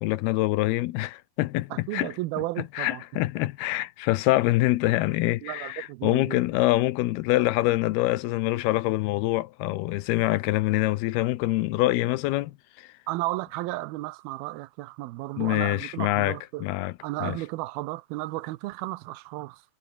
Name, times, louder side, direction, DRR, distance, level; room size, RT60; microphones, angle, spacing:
voice 1, 0.0-2.1 2.7-12.9 15.4-16.9 17.2-17.4, left 17 dB, 85° left, 2.8 m, -25 dB
voice 2, 1.7-3.0 5.4-6.4 13.1-16.7 17.0-19.6, right 19 dB, 85° right, 2.6 m, -33 dB
omnidirectional pair, 4.4 m